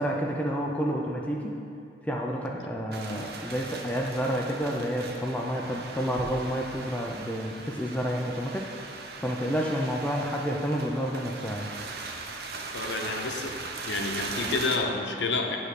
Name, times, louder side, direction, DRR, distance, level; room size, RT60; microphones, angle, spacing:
voice 1, 0.0-1.6 2.1-8.7 9.2-11.7, equal, 10° left, -1 dB, 0.3 m, -29 dB
sound 1, 2.9-14.8, right 3 dB, 60° right, 0.6 m, -39 dB
voice 2, 12.7-13.5 13.9-15.6, left 3 dB, 80° left, 2 dB, 0.7 m, -29 dB
8.6 x 3.2 x 6.4 m, 2.5 s
head